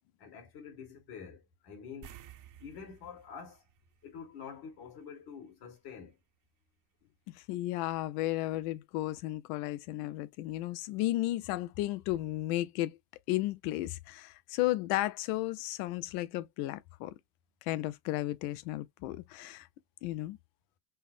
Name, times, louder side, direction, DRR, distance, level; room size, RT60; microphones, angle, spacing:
voice 1, 0.2-2.1 2.6-3.6 4.0-6.2, left 6 dB, 55° left, 1.9 m, -47 dB
sound 1, 2.0-4.8 5.1-5.3 8.2-8.3 8.6-8.7, right 10 dB, 40° right, 0.8 m, -54 dB
voice 2, 7.3-13.0 13.3-17.1 17.7-19.7 20.0-20.4, left 16 dB, 80° left, 0.6 m, -34 dB
5.6 x 2.0 x 2.5 m
supercardioid pair, 120°, 46 cm